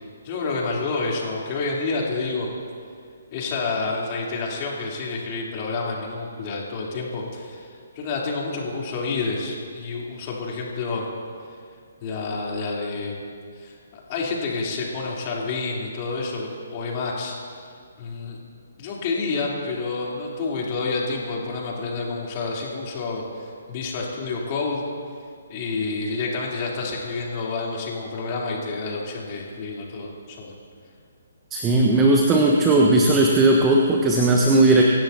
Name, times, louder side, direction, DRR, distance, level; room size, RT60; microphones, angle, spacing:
voice 1, 0.2-2.5 3.3-7.7 8.0-11.1 12.0-13.2 13.6-17.4 18.0-18.4 18.8-24.9 25.5-30.6, left 3 dB, 30° left, -3 dB, 3.5 m, -29 dB
voice 2, 31.5-34.8, right 2 dB, 15° right, -1 dB, 1.3 m, -17 dB
25.0 x 16.0 x 2.8 m, 2.2 s
figure-of-eight pair, 135°, 0 cm